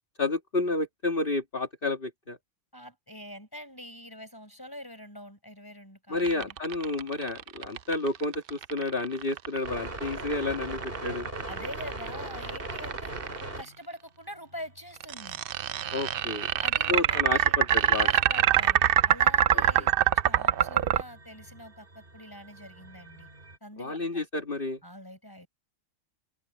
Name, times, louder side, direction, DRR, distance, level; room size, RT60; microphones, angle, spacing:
voice 1, 0.2-2.4 6.1-11.3 15.9-16.5 16.9-18.1 19.5-19.9 23.8-24.8, left 2 dB, 40° left, 2.4 m, -30 dB
voice 2, 2.7-6.6 11.5-13.3 13.6-15.4 16.6-17.6 17.9-23.3 23.6-24.2 24.8-25.5, equal, 15° left, 5.4 m, -44 dB
sound 1, 6.2-13.4 15.0-21.0, right 10 dB, 60° right, 0.6 m, -24 dB
sound 2, 9.6-13.8 14.2-23.6, right 2 dB, 45° right, 4.5 m, -42 dB
omnidirectional pair, 1.4 m